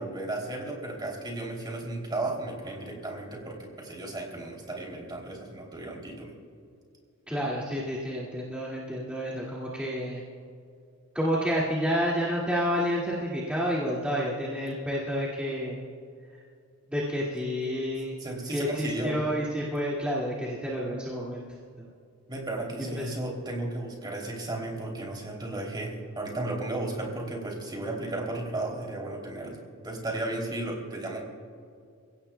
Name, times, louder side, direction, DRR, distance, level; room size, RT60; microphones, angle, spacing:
voice 1, 0.0-6.3 18.2-19.2 22.3-31.2, right 2 dB, 20° right, 0 dB, 3.0 m, -34 dB
voice 2, 7.3-10.2 11.1-15.8 16.9-18.2 18.5-21.5 21.8-21.9 23.0-23.1, equal, 5° right, -7 dB, 2.1 m, -29 dB
29.0 x 16.5 x 2.3 m, 2.3 s
head